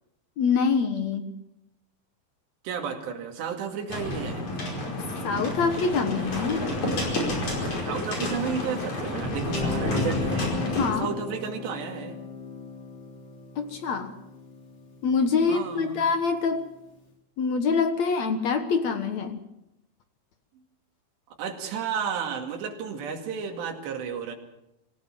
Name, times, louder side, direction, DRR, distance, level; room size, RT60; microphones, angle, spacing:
voice 1, 0.4-1.2 5.2-6.7 10.8-11.1 13.6-14.1 15.0-16.7 17.4-19.4, left 5 dB, 70° left, 8 dB, 1.7 m, -25 dB
voice 2, 2.6-4.5 7.9-10.5 11.0-12.2 15.5-16.0 21.4-24.4, right 6 dB, 75° right, 3 dB, 4.5 m, -32 dB
sound 1, 3.9-10.9, left 1 dB, 40° left, 6.1 m, -29 dB
Guitar, 9.4-16.5, left 3 dB, 25° left, 3.8 m, -37 dB
25.5 x 16.5 x 7.6 m, 0.85 s
omnidirectional pair, 5.1 m